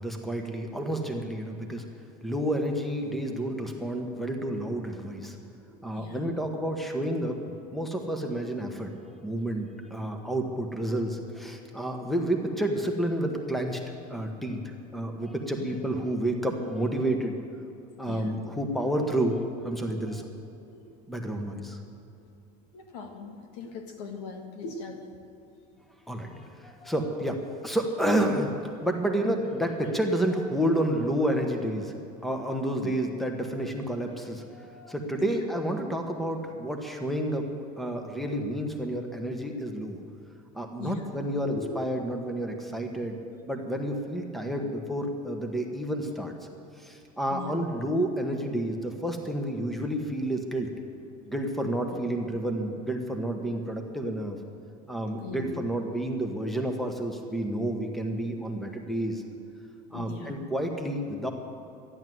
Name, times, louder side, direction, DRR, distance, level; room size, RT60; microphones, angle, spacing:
voice 1, 0.0-1.8 2.2-5.4 5.8-7.4 7.7-8.9 9.2-13.8 14.1-17.4 18.0-20.3 21.1-21.8 26.1-31.9 32.2-37.4 37.8-40.0 40.5-43.2 43.4-46.3 46.8-50.7 51.2-54.4 54.9-59.2 59.9-61.3, right 1 dB, ahead, 4 dB, 1.3 m, -30 dB
voice 2, 5.7-6.3 7.8-7.9 15.5-15.7 18.1-18.4 19.8-20.1 20.7-20.8 22.7-25.0 26.3-26.4 32.8-32.9 35.2-35.4 40.8-41.1 41.4-41.7 47.3-47.5 55.2-55.5 59.9-60.3, left 4 dB, 85° left, 5 dB, 1.9 m, -40 dB
13.0 x 11.0 x 7.8 m, 2.7 s
supercardioid pair, 135°, 20 cm